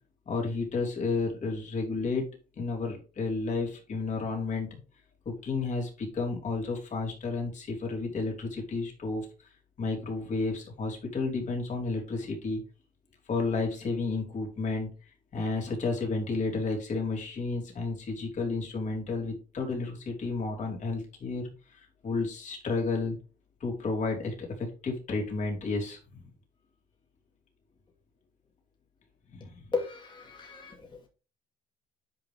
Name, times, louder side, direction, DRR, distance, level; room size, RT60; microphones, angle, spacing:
voice 1, 0.3-2.2 2.6-4.7 5.3-9.3 9.8-12.6 13.3-14.9 15.3-23.2 23.6-26.3 29.3-29.6, left 3 dB, 45° left, 1 dB, 3.5 m, -32 dB
voice 2, 29.7-31.1, left 4 dB, 30° left, 1 dB, 2.4 m, -35 dB
9.5 x 5.4 x 3.6 m, 0.33 s
cardioid pair, 110°, 17 cm